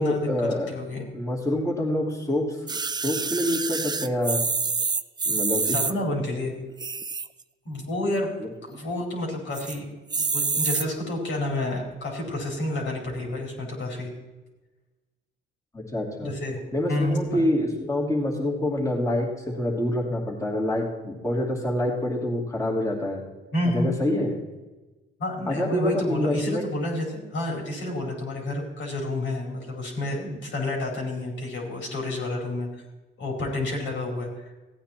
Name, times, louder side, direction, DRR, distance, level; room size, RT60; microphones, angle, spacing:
voice 1, 0.0-0.7 1.1-2.6 3.0-4.4 5.3-5.8 8.4-8.5 15.7-16.3 16.7-19.3 19.6-23.2 23.7-24.3 25.5-26.6, left 1 dB, 15° left, -3 dB, 2.8 m, -26 dB
voice 2, 0.7-1.0 5.7-6.5 7.6-8.3 8.7-9.9 10.2-14.1 16.2-16.6 16.9-17.4 23.5-23.9 25.2-32.7 33.2-34.5, left 1 dB, 70° left, 0 dB, 4.6 m, -29 dB
sound 1, 2.7-5.9 6.7-7.4 7.9-8.0 8.1-8.2 8.6-9.0 9.5-9.8 10.1-10.9 11.6-11.7, right 4 dB, 20° right, 0.5 m, -27 dB
15.5 x 9.1 x 4.4 m, 1.1 s
cardioid pair, 90°, 20 cm